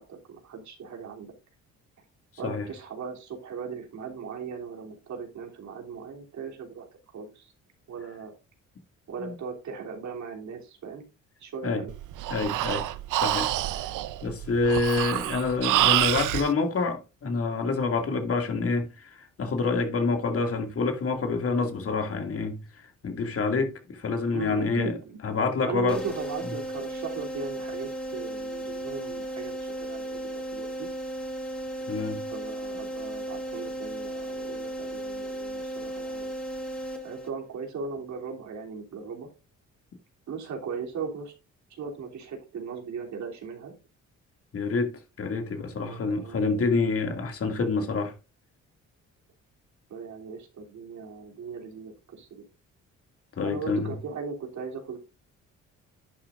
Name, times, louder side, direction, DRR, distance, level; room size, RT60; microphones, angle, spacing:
voice 1, 0.0-1.3 2.4-6.9 7.1-7.5 7.9-8.3 9.1-11.0 11.4-11.9 24.3-25.2 25.6-30.9 32.3-36.3 37.0-39.3 40.3-41.3 41.7-43.7 45.8-46.6 49.9-52.4 53.4-55.0, right 5 dB, 70° right, 3.3 m, -38 dB
Breathing, 11.9-16.5, right 14 dB, 90° right, 0.8 m, -27 dB
voice 2, 12.3-12.8 13.2-13.5 14.2-25.0 25.2-26.0 31.9-32.2 44.5-48.1 53.4-54.0, left 4 dB, 50° left, 2.4 m, -27 dB
sound 1, 25.9-37.6, right 1 dB, 5° left, 3.1 m, -35 dB
11.0 x 9.0 x 2.6 m
cardioid pair, 90°, 30 cm